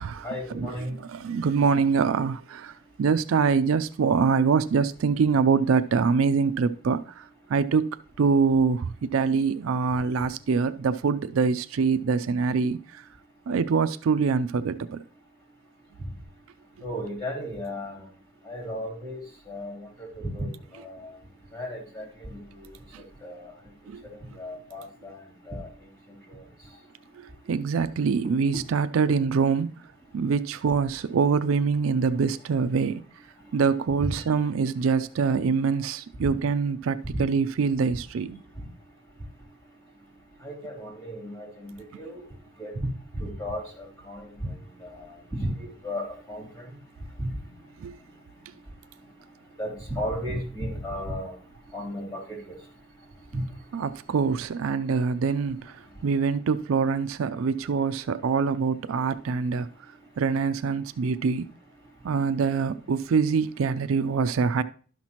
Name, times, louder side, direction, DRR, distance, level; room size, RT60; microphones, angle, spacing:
voice 1, 0.2-0.9 16.8-18.0 18.5-19.2 19.5-19.8 20.2-21.1 21.5-22.4 23.2-23.5 24.4-25.2 25.5-25.7 34.0-34.1 40.4-42.1 42.6-42.7 43.2-43.6 44.1-44.2 44.8-45.1 45.4-46.5 47.2-47.3 49.6-51.3 51.7-52.4, equal, 15° left, 2.9 m, -34 dB
voice 2, 1.1-2.7 3.0-7.2 7.5-7.9 8.2-13.0 13.5-15.0 22.9-23.0 23.9-24.0 27.2-29.8 30.1-33.0 33.5-38.4 47.8-48.0 53.7-55.7 56.0-59.7 60.2-61.4 62.0-64.6, right 5 dB, 70° right, 0.4 m, -24 dB
12.0 x 5.9 x 2.9 m
head